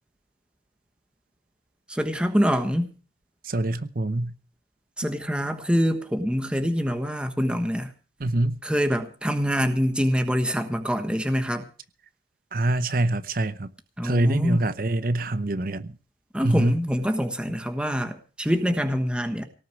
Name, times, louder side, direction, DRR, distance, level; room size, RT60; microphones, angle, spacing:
voice 1, 1.9-2.9 5.0-7.9 8.6-11.6 14.0-14.7 16.3-19.5, equal, 5° right, 1.3 m, -25 dB
voice 2, 3.4-4.3 8.2-8.6 12.5-13.7 14.0-15.9 16.4-16.8, right 2 dB, 50° right, 0.8 m, -24 dB
18.0 x 6.7 x 9.3 m
head